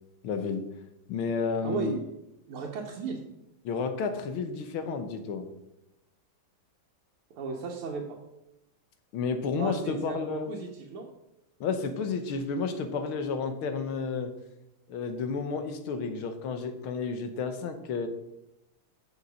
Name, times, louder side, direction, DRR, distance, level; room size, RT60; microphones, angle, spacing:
voice 1, 0.2-0.7 1.1-2.0 3.6-5.5 9.1-10.5 11.6-14.3 14.9-18.1, left 5 dB, 75° left, 8 dB, 1.8 m, -31 dB
voice 2, 1.6-2.0 2.5-3.2 7.3-8.2 9.6-11.1, right 5 dB, 85° right, -2 dB, 2.0 m, -35 dB
7.1 x 7.0 x 6.4 m, 0.88 s
omnidirectional pair, 2.3 m